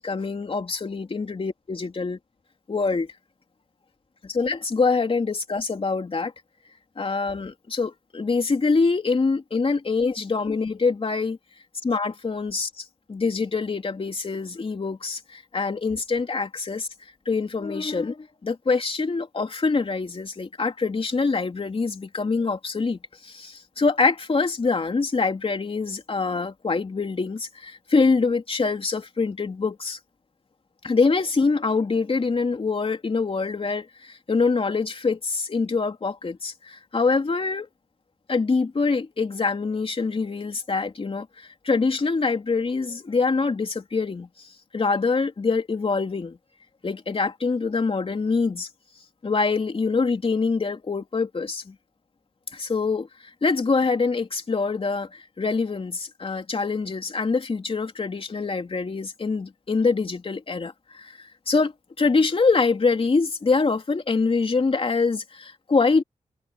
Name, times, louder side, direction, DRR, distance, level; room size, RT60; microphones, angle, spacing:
voice 1, 0.0-2.2 2.7-3.1 4.2-6.3 7.0-11.4 11.8-12.7 13.1-16.9 17.2-30.0 30.8-37.7 38.3-44.3 44.7-46.4 46.8-48.7 49.2-51.7 52.5-66.0, left 4 dB, 45° left, 3.2 m, -25 dB
wide cardioid pair, 110°, 14 cm